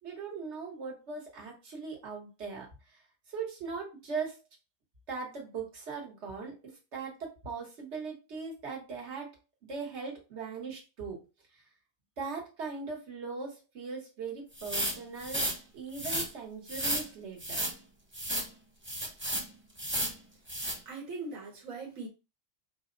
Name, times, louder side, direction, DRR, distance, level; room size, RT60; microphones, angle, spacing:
voice 1, 0.0-3.0 3.3-4.4 5.1-9.4 9.7-11.2 11.5-11.6 12.2-17.6, right 5 dB, 60° right, 1.7 m, -40 dB
sound 1, 14.6-15.6 15.9-16.3 16.7-17.1 17.4-17.7 18.1-18.5 18.8-19.5 19.8-20.2 20.5-20.8, right 1 dB, 10° right, 0.7 m, -32 dB
voice 2, 20.8-22.1, right 3 dB, 85° right, 1.5 m, -40 dB
4.9 x 2.3 x 3.8 m
omnidirectional pair, 1.4 m